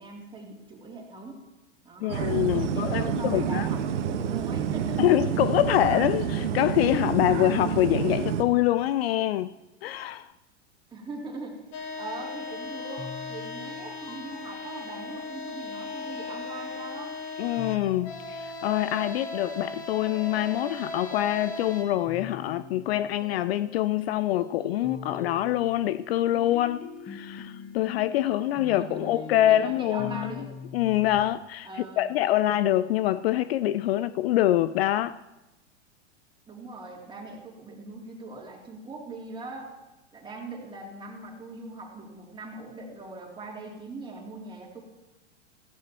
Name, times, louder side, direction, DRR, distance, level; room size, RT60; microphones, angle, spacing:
voice 1, 0.0-1.4 1.8-2.3 2.6-5.1 5.4-5.7 10.9-11.6 12.0-17.1 28.4-30.5 31.6-32.1 36.5-39.7 40.1-44.8, right 3 dB, 15° right, 3.0 m, -41 dB
voice 2, 2.0-3.7 5.0-9.5 9.8-10.3 17.4-30.3 30.7-35.2, left 13 dB, 55° left, 0.4 m, -25 dB
sound 1, 2.1-8.4, right 8 dB, 75° right, 1.4 m, -28 dB
sound 2, 11.7-21.8, left 3 dB, 40° left, 2.0 m, -38 dB
sound 3, 13.0-16.9 17.6-19.0 20.1-21.2 22.1-24.0 24.3-31.3, left 5 dB, 25° left, 1.2 m, -44 dB
15.5 x 15.0 x 3.0 m
hypercardioid pair, 130°, 36 cm